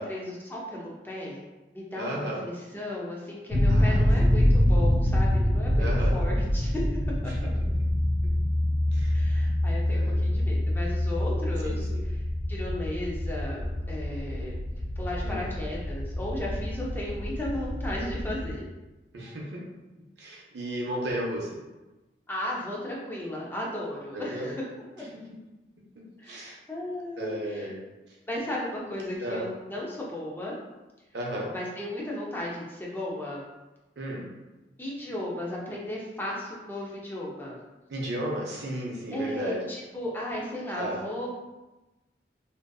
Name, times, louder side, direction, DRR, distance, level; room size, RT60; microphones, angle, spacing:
voice 1, 0.0-1.4 1.7-5.8 6.1-6.9 9.1-12.2 12.5-14.6 15.0-18.7 22.3-24.7 25.0-25.1 26.2-27.7 28.3-30.6 31.5-33.4 34.8-37.6 39.1-41.3, left 1 dB, 10° left, -4 dB, 0.4 m, -35 dB
voice 2, 2.0-2.4 3.7-4.5 5.8-6.2 8.9-9.1 9.9-10.2 11.6-12.0 15.2-15.5 19.1-19.6 20.2-21.5 24.1-24.5 26.3-26.6 27.2-27.8 29.2-29.4 31.1-31.5 34.0-34.2 37.9-39.6 40.7-41.0, right 1 dB, 75° right, -3 dB, 0.5 m, -34 dB
sound 1, 3.5-18.5, left 1 dB, 75° left, 0.6 m, -26 dB
2.6 x 2.4 x 2.2 m, 1.1 s
head